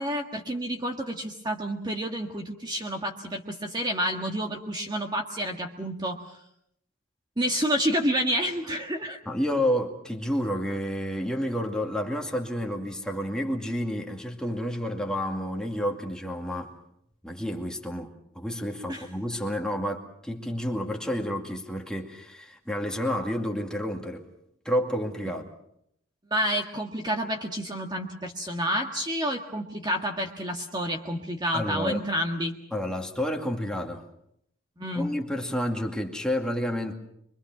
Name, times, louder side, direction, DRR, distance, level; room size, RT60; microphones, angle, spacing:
voice 1, 0.0-6.2 7.4-9.2 18.9-19.0 26.3-32.6 34.8-35.1, equal, 20° right, 2 dB, 1.7 m, -29 dB
voice 2, 9.3-16.7 17.2-24.3 24.6-25.5 31.5-32.1 32.7-34.0 34.9-37.0, equal, 5° left, 1 dB, 2.3 m, -30 dB
25.0 x 24.5 x 6.1 m, 0.74 s
head